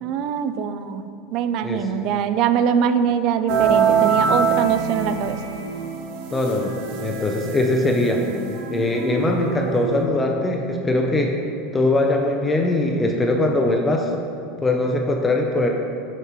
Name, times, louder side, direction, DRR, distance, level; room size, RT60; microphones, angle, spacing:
voice 1, 0.0-5.4, right 7 dB, 50° right, 10 dB, 0.3 m, -23 dB
sound 1, 3.5-10.0, right 6 dB, 65° right, 0.8 m, -24 dB
voice 2, 6.3-8.2 8.7-11.3 11.7-14.1 14.6-15.7, left 2 dB, 15° left, 1 dB, 0.5 m, -21 dB
6.7 x 3.1 x 5.8 m, 2.5 s
supercardioid pair, 140°, 0 cm